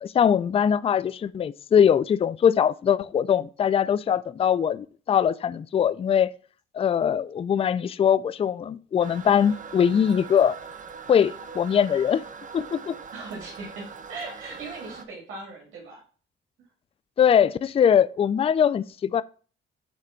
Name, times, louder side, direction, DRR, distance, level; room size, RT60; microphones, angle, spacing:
voice 1, 0.0-6.3 6.7-10.6 11.1-12.2 12.5-12.9 17.2-19.2, left 8 dB, 30° left, 0.3 m, -22 dB
Toilet flush, 9.0-15.0, right 6 dB, 40° right, 0.9 m, -42 dB
voice 2, 13.1-16.0, right 3 dB, 80° right, 2.3 m, -39 dB
8.2 x 3.4 x 5.8 m
cardioid pair, 90°, 20 cm